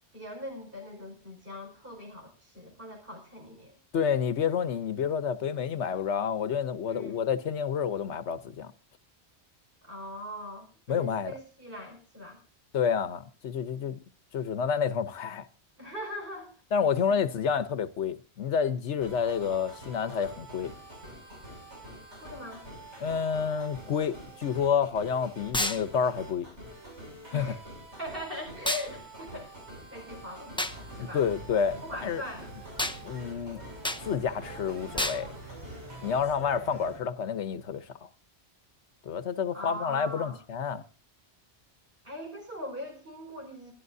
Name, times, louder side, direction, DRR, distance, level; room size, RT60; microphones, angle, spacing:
voice 1, 0.0-3.8 6.8-7.2 9.8-12.4 15.8-16.5 17.1-17.2 22.2-22.6 27.3-27.6 28.0-29.5 29.9-31.2 31.8-32.5 39.5-40.4 42.0-43.7, left 1 dB, 55° right, 5.2 m, -41 dB
voice 2, 3.9-8.7 10.9-11.3 12.7-14.0 14.3-15.5 16.7-20.7 23.0-26.5 27.3-27.6 31.0-32.2 33.0-33.6 34.0-35.3 36.0-38.1 39.0-40.8, left 7 dB, 85° left, 1.2 m, -29 dB
sound 1, 19.0-36.3, right 1 dB, 90° right, 6.8 m, -46 dB
sound 2, 25.5-25.8 28.7-28.9 30.6-30.8 32.8-33.0 33.8-34.0 35.0-35.2, left 1 dB, 5° left, 0.5 m, -29 dB
sound 3, 30.7-37.0, right 3 dB, 75° right, 2.7 m, -47 dB
28.5 x 12.0 x 2.7 m
omnidirectional pair, 1.1 m